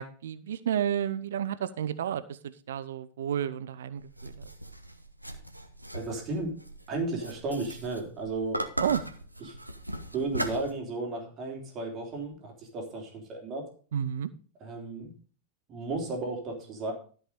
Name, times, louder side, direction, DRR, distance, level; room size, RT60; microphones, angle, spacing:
voice 1, 0.0-4.5 8.8-9.0 13.9-14.3, right 9 dB, 60° right, 15 dB, 0.6 m, -31 dB
sound 1, 4.0-10.7, right 1 dB, 85° right, 1.0 m, -38 dB
voice 2, 5.9-6.6 6.9-8.6 9.5-9.6 10.1-13.6 14.6-15.1 15.7-16.9, right 3 dB, 30° right, 1 dB, 3.3 m, -34 dB
13.0 x 5.6 x 5.1 m, 0.41 s
figure-of-eight pair, 90°, 0 cm